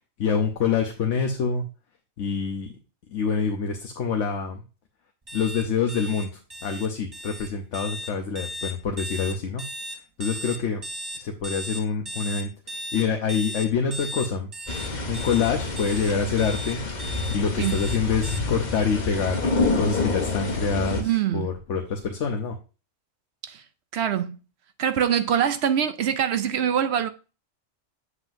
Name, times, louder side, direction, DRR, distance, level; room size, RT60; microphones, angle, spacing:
voice 1, 0.2-1.6 2.2-2.8 3.1-4.6 5.3-6.3 6.6-9.6 10.2-10.8 11.2-14.5 15.0-16.8 17.3-22.6, left 6 dB, 65° left, 1.1 m, -26 dB
sound 1, 5.3-18.4, equal, 25° right, 0.6 m, -36 dB
sound 2, 14.7-21.0, left 3 dB, 35° left, 1.1 m, -28 dB
voice 2, 21.0-21.5 23.4-23.6 23.9-24.4 24.8-27.1, right 9 dB, 65° right, 0.7 m, -24 dB
8.1 x 7.5 x 2.6 m
omnidirectional pair, 1.4 m